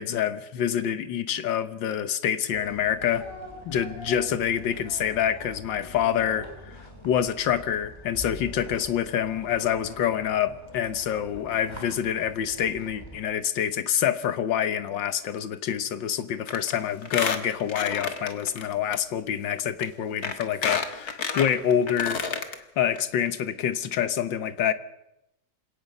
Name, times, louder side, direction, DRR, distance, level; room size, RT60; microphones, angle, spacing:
voice 1, 0.0-3.2 3.7-22.2 22.8-24.7, left 9 dB, 80° left, 12 dB, 1.8 m, -27 dB
sound 1, 2.5-13.2, left 1 dB, 15° left, 4.0 m, -44 dB
Squeak, 16.5-16.7 17.0-18.6 18.9-19.0 19.8-19.9 20.2-22.5 23.0-23.1 23.3-23.4, left 5 dB, 55° left, 2.0 m, -30 dB
27.5 x 17.5 x 5.5 m, 0.85 s
omnidirectional pair, 2.0 m